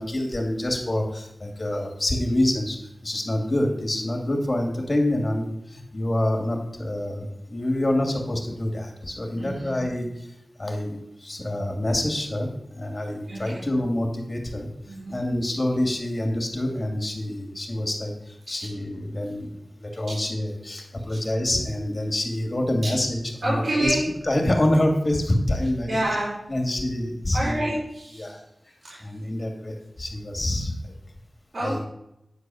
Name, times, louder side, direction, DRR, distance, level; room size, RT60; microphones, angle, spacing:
voice 1, 0.0-2.8 3.0-10.1 10.6-12.5 12.8-14.7 15.1-19.5 19.8-24.0 24.2-26.0 26.5-27.7 28.1-28.4 29.0-30.7 31.6-31.8, left 1 dB, 40° left, 2 dB, 2.6 m, -26 dB
voice 2, 9.4-9.9 13.3-13.7 14.9-15.1 18.5-18.7 20.1-20.2 21.1-21.2 22.8-22.9 23.4-24.0 25.9-26.3 27.3-28.4 28.8-29.1 31.5-31.8, right 1 dB, 65° right, -7 dB, 4.1 m, -28 dB
9.9 x 4.8 x 7.8 m, 0.81 s
wide cardioid pair, 65°, 0 cm